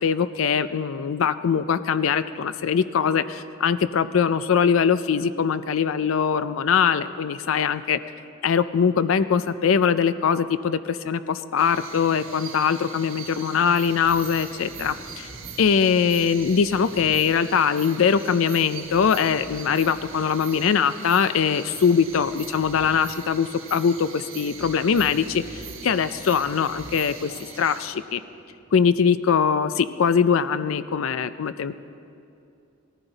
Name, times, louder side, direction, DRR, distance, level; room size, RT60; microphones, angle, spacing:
voice 1, 0.0-8.0 8.4-15.3 15.6-28.2 28.7-31.7, left 6 dB, 85° left, 13 dB, 0.4 m, -22 dB
sound 1, 11.6-27.9, right 7 dB, 85° right, 1.4 m, -41 dB
sound 2, 13.8-28.9, equal, 50° left, 2.3 m, -49 dB
19.0 x 14.5 x 4.0 m, 2.6 s
head